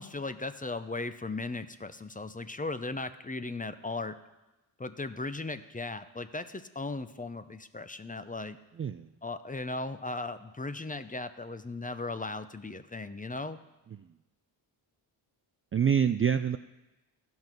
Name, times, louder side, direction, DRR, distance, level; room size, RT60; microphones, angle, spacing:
voice 1, 0.0-4.2 4.8-8.6 9.2-13.6, left 3 dB, 15° left, 11 dB, 0.6 m, -37 dB
voice 2, 8.8-9.1 13.9-14.1 15.7-16.6, right 8 dB, 30° right, 9 dB, 0.3 m, -26 dB
13.5 x 5.5 x 6.0 m, 1.0 s
cardioid pair, 50°, 48 cm